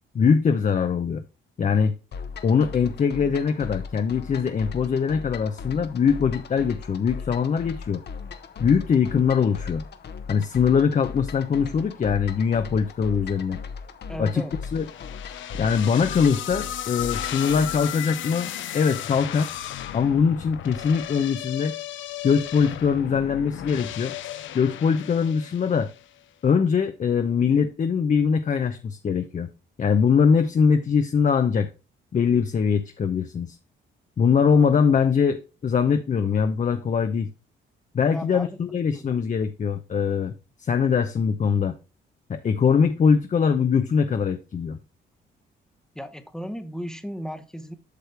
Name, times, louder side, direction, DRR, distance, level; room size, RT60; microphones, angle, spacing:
voice 1, 0.1-1.2 1.6-1.9 2.4-8.0 8.6-9.8 10.3-13.6 14.2-14.4 14.7-14.9 15.6-19.5 19.9-21.8 22.2-24.1 24.5-25.9 26.4-29.5 29.8-31.7 32.1-33.6 34.2-37.3 37.9-41.8 42.3-44.8, left 6 dB, 40° left, 0.7 m, -22 dB
sound 1, 2.1-18.0, left 5 dB, 60° left, 1.1 m, -38 dB
voice 2, 14.1-14.6 38.1-39.2 45.9-47.7, equal, 5° left, 1.0 m, -36 dB
sound 2, 14.8-26.1, left 12 dB, 75° left, 0.7 m, -35 dB
8.3 x 6.3 x 3.4 m
cardioid pair, 90°, 20 cm